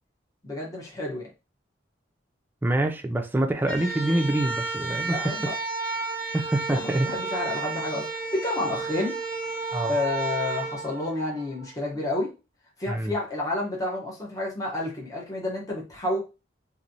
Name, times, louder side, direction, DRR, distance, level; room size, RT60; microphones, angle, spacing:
voice 1, 0.4-1.3 5.0-5.5 6.7-9.2 9.8-12.3 12.8-16.2, left 2 dB, 20° left, 0.9 m, -30 dB
voice 2, 2.6-5.3 6.3-7.1 9.7-9.9 12.9-13.1, right 1 dB, 10° right, 0.4 m, -25 dB
sound 1, 3.6-11.7, right 4 dB, 50° left, 1.2 m, -32 dB
3.1 x 2.6 x 2.6 m
head